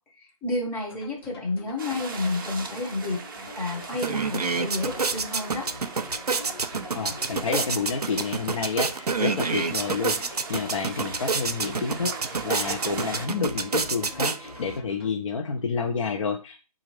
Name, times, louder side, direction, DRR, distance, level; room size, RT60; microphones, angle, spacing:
voice 1, 0.2-3.2 3.5-5.7, left 2 dB, 10° left, -2 dB, 0.8 m, -30 dB
sound 1, 0.9-15.1, left 2 dB, 40° left, 1.1 m, -45 dB
sound 2, 1.8-13.3, right 5 dB, 35° right, 0.6 m, -40 dB
sound 3, 3.5-3.6 3.9-14.8, right 4 dB, 90° right, 0.5 m, -29 dB
voice 2, 6.9-16.6, left 5 dB, 55° left, 2 dB, 0.7 m, -29 dB
5.0 x 2.5 x 3.2 m, 0.32 s
figure-of-eight pair, 145°, 19 cm